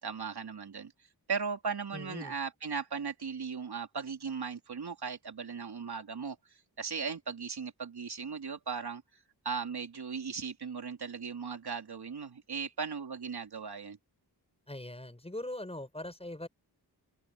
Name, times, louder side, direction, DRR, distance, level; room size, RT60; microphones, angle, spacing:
voice 1, 0.0-0.9 1.3-6.4 6.8-9.0 9.4-14.0, right 5 dB, 70° right, 3.2 m, -37 dB
voice 2, 1.9-2.4 14.7-16.5, left 1 dB, 15° left, 7.2 m, -41 dB
wide cardioid pair, 100°, 40 cm